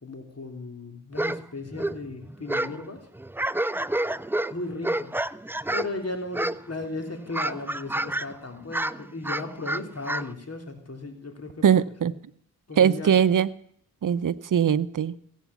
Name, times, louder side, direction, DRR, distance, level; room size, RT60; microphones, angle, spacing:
voice 1, 0.0-3.0 4.5-5.2 5.7-11.6 12.7-13.1, left 2 dB, 45° left, 4 dB, 3.0 m, -36 dB
sound 1, 1.1-1.4 1.7-2.8 3.1-6.0 6.3-6.8 7.1-8.3 8.6-10.3, right 1 dB, 5° right, 0.4 m, -29 dB
voice 2, 11.6-12.1 12.8-13.5 14.0-15.1, right 8 dB, 60° right, 17 dB, 0.7 m, -21 dB
16.0 x 8.2 x 7.1 m, 0.69 s
cardioid pair, 40°, 36 cm